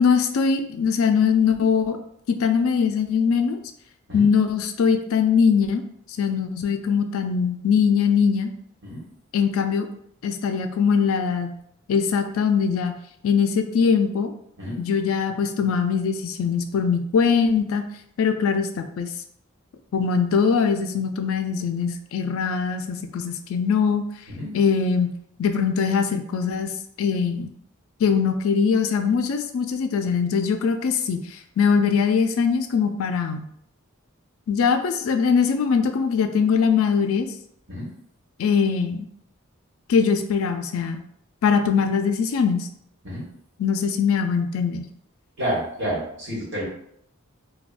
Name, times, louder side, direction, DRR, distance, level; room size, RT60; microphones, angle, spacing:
voice 1, 0.0-2.0 2.4-3.6 4.1-5.8 6.2-8.5 9.3-9.9 10.2-11.5 11.9-13.0 13.2-14.3 14.8-17.8 18.2-19.1 19.9-24.0 24.5-25.1 25.4-26.7 27.0-27.5 28.0-31.2 31.6-33.5 34.5-37.3 38.4-39.1 39.9-41.0 41.4-42.7 43.6-44.9, left 6 dB, 75° left, 7 dB, 0.3 m, -21 dB
voice 2, 45.4-46.7, equal, 55° right, -6 dB, 1.3 m, -29 dB
3.4 x 2.3 x 2.4 m, 0.70 s
head